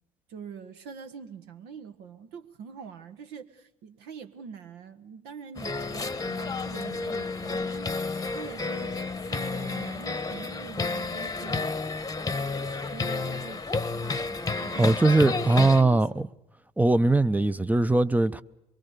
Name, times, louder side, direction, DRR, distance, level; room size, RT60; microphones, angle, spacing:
voice 1, 0.3-8.0 8.3-11.7 12.9-16.2, right 6 dB, 65° right, 1.5 m, -44 dB
sound 1, 5.6-15.8, left 3 dB, 20° left, 1.1 m, -31 dB
voice 2, 14.8-16.3 16.8-18.4, right 2 dB, 10° right, 0.8 m, -21 dB
23.5 x 23.5 x 6.8 m
figure-of-eight pair, 50°, 19 cm